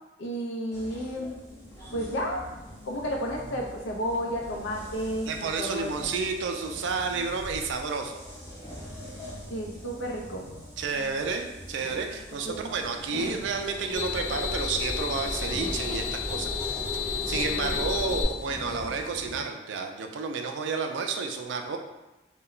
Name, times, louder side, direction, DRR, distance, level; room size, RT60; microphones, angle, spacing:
voice 1, 0.2-1.3 1.9-2.4 2.9-6.1 9.5-10.4 12.4-12.7 17.3-17.8, equal, 85° left, 0 dB, 0.5 m, -32 dB
sound 1, 0.7-19.4, equal, 15° left, 0.6 m, -43 dB
voice 2, 5.3-8.2 10.8-16.5 16.9-21.8, right 4 dB, 75° right, 4 dB, 0.3 m, -31 dB
sound 2, 13.4-18.2, left 4 dB, 35° left, 1.1 m, -31 dB
2.2 x 2.1 x 3.7 m, 1.0 s
head